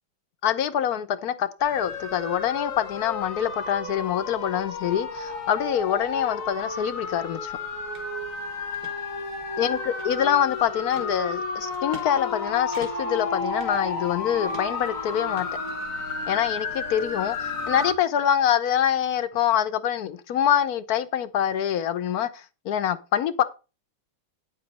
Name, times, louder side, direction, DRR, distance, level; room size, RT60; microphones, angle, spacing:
voice 1, 0.4-7.6 9.6-15.5 16.3-23.4, left 9 dB, 70° left, 1.1 m, -25 dB
sound 1, 1.6-17.9, left 4 dB, 50° left, 1.8 m, -32 dB
sound 2, 7.9-8.1 8.5-8.9 9.5-10.4 10.9-11.1 11.7-12.1 12.4-12.5 12.7-13.2 13.6-14.2 14.5-14.9 15.4-16.2, right 3 dB, 65° right, 2.6 m, -45 dB
9.1 x 7.5 x 4.1 m
omnidirectional pair, 1.8 m